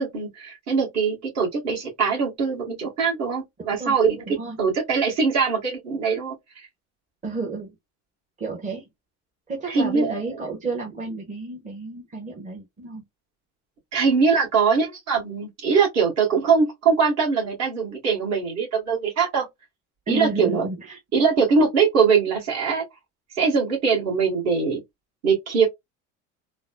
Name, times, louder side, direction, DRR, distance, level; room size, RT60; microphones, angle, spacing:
voice 1, 0.0-6.7 9.7-10.4 13.9-19.5 20.1-20.7 21.1-22.8 23.3-24.8 25.2-25.7, right 5 dB, 45° right, 1.9 m, -22 dB
voice 2, 4.3-4.6 7.2-7.7 8.4-8.9 9.5-13.0 20.1-21.0, right 3 dB, 20° right, 1.1 m, -31 dB
3.9 x 2.1 x 2.4 m
supercardioid pair, 115°, 35 cm